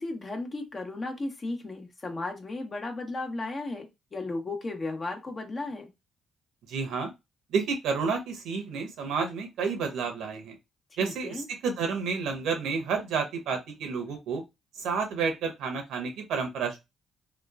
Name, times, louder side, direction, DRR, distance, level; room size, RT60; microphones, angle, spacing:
voice 1, 0.0-5.9 11.0-11.5, left 2 dB, 35° left, 3 dB, 0.8 m, -35 dB
voice 2, 6.7-7.1 7.5-10.6 11.0-14.4 14.7-16.8, right 5 dB, 85° right, 4 dB, 0.9 m, -30 dB
2.9 x 2.2 x 2.3 m, 0.22 s
cardioid pair, 90°, 0 cm